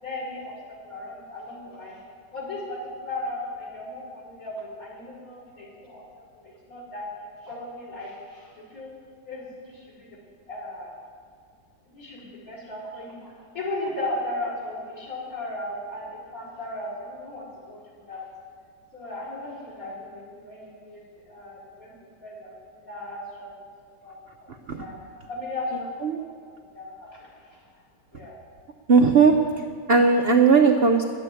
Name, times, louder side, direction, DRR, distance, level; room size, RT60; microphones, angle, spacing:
voice 1, 0.0-2.0 2.3-6.0 6.3-7.1 7.4-8.9 9.2-10.1 10.5-10.9 11.9-18.3 18.9-21.0 21.3-21.9 22.2-23.7 24.0-24.2 24.5-25.9 26.2-26.3 26.7-27.6 28.1-28.4, left 2 dB, 50° left, -6 dB, 5.3 m, -36 dB
voice 2, 24.5-24.8 26.0-26.2 28.9-31.0, right 4 dB, 50° right, 3 dB, 0.7 m, -18 dB
12.0 x 8.5 x 9.1 m, 2.2 s
omnidirectional pair, 1.9 m